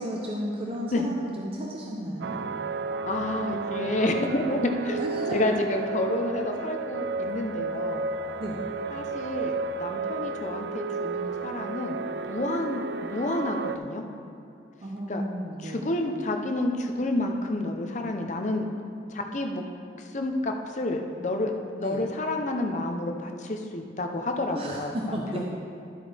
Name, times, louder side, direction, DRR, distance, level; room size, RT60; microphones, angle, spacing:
voice 1, 0.0-2.4 5.0-5.6 8.4-8.7 14.8-15.9 21.8-22.1 24.5-25.4, equal, 30° right, -2 dB, 0.7 m, -33 dB
sound 1, 2.2-13.8, right 4 dB, 70° right, 0.3 m, -32 dB
voice 2, 3.1-5.0 5.3-8.1 8.9-12.0 12.3-14.0 15.1-15.2 15.6-18.6 19.1-19.6 20.1-21.5 21.8-25.4, left 1 dB, 40° left, 4 dB, 0.7 m, -29 dB
12.0 x 7.8 x 3.5 m, 2.5 s
head